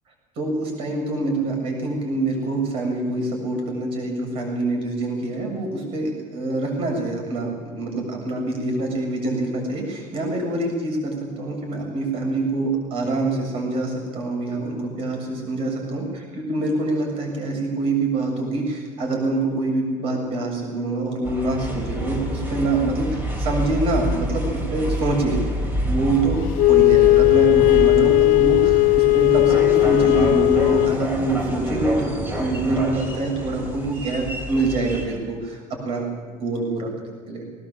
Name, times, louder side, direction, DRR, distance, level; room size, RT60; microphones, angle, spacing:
voice 1, 0.4-25.4 25.7-26.4 26.7-36.9 37.3-37.4, right 2 dB, 45° right, 1 dB, 7.1 m, -25 dB
sound 1, 21.2-35.1, right 1 dB, 15° right, 3.4 m, -28 dB
Wind instrument woodwind instrument, 26.6-31.0, left 20 dB, 80° left, 0.6 m, -16 dB
19.5 x 18.5 x 7.4 m, 1.5 s
cardioid pair, 175°, 13 cm